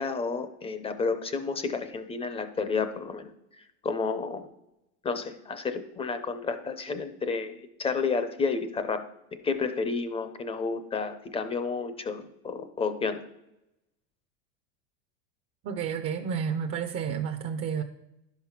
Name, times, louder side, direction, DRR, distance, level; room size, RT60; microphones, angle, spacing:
voice 1, 0.0-3.3 3.8-4.5 5.0-9.0 9.4-13.2, left 4 dB, 15° left, 9 dB, 0.6 m, -31 dB
voice 2, 15.6-17.8, right 7 dB, 30° right, 5 dB, 0.6 m, -31 dB
11.0 x 5.9 x 5.8 m, 0.88 s
supercardioid pair, 140°, 43 cm